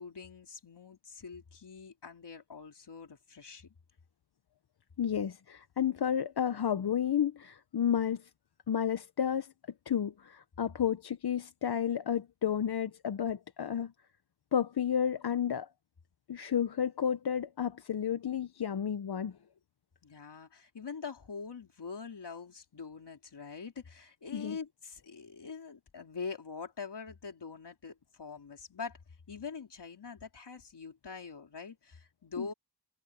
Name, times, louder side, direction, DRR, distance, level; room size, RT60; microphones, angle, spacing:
voice 1, 0.0-3.7 20.0-29.0 29.3-32.5, left 5 dB, 90° left, 3.7 m, -44 dB
voice 2, 5.0-8.3 8.7-9.5 9.9-13.9 14.5-15.7 16.3-19.3 24.3-24.6 32.4-32.5, left 8 dB, 70° left, 0.8 m, -31 dB
wide cardioid pair, 90°, 40 cm